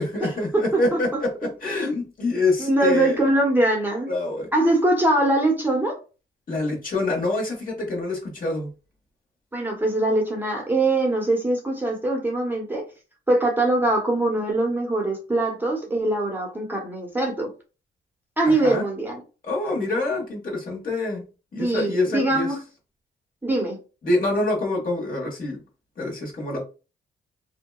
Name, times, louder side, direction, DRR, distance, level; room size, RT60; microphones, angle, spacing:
voice 1, 0.0-3.2 4.1-4.5 6.5-8.7 18.4-18.8 19.5-21.2 21.5-22.5 24.0-25.6 26.0-26.6, left 2 dB, 45° left, 1.4 m, -26 dB
voice 2, 0.5-1.2 2.6-4.1 4.5-6.0 9.5-12.8 13.3-17.5 18.4-19.2 21.6-22.6 23.4-23.8, right 2 dB, 10° right, 0.9 m, -22 dB
2.7 x 2.2 x 2.3 m
cardioid pair, 70°, 20 cm